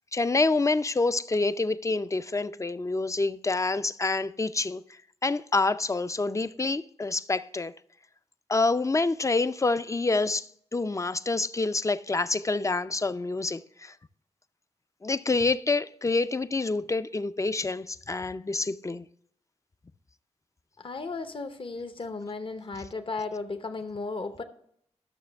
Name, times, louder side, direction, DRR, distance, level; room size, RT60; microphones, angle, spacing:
voice 1, 0.1-4.8 5.2-7.7 8.5-13.9 15.0-19.0, left 3 dB, 25° left, 0.5 m, -27 dB
voice 2, 20.8-24.4, left 3 dB, 45° left, 0.8 m, -35 dB
12.0 x 6.6 x 3.4 m
cardioid pair, 50°, 12 cm